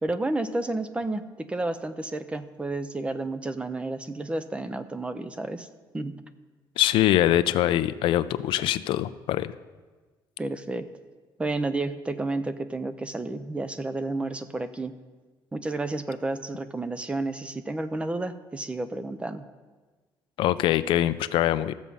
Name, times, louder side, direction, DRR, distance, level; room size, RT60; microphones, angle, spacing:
voice 1, 0.0-5.7 5.9-6.1 10.4-10.9 11.4-15.0 15.5-19.5, right 2 dB, 15° right, 11 dB, 0.5 m, -31 dB
voice 2, 6.8-9.5 20.4-21.7, left 13 dB, 80° left, 13 dB, 0.4 m, -23 dB
14.0 x 7.3 x 5.4 m, 1.3 s
cardioid pair, 150°, 9 cm